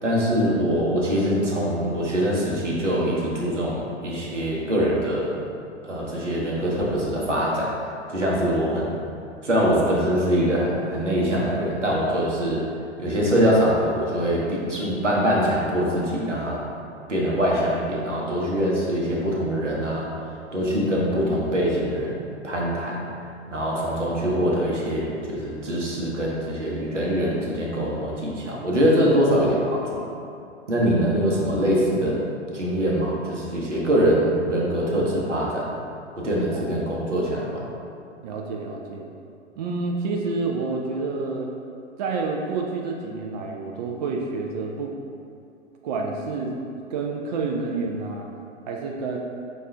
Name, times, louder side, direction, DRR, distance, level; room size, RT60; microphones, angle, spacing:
voice 1, 0.0-5.5 5.8-7.7 8.1-9.0 9.4-12.6 13.0-16.7 17.1-20.1 20.5-23.0 23.5-30.1 30.7-32.2 32.5-35.7 36.2-37.7, equal, 85° right, -4 dB, 0.9 m, -23 dB
voice 2, 36.5-36.9 38.2-39.1 39.6-41.5 42.0-44.9 45.8-46.6 46.9-48.3 48.7-49.2, right 3 dB, 40° right, 0 dB, 0.4 m, -29 dB
5.3 x 2.4 x 3.2 m, 2.5 s
figure-of-eight pair, 100°, 35 cm